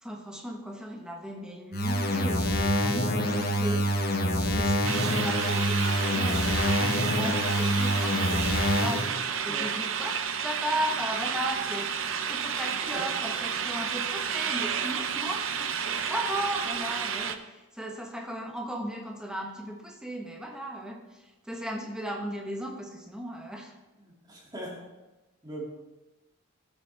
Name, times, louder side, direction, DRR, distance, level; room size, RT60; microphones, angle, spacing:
voice 1, 0.0-3.9 4.5-9.1 9.4-11.9 12.3-23.7, equal, 5° right, 1 dB, 1.1 m, -36 dB
sound 1, 1.7-9.1, equal, 45° left, 1.2 m, -26 dB
sound 2, 4.8-17.4, right 7 dB, 65° right, 0.6 m, -31 dB
voice 2, 24.0-24.8 25.4-25.6, right 1 dB, 20° right, -3 dB, 2.3 m, -40 dB
15.0 x 7.1 x 3.4 m, 1.1 s
head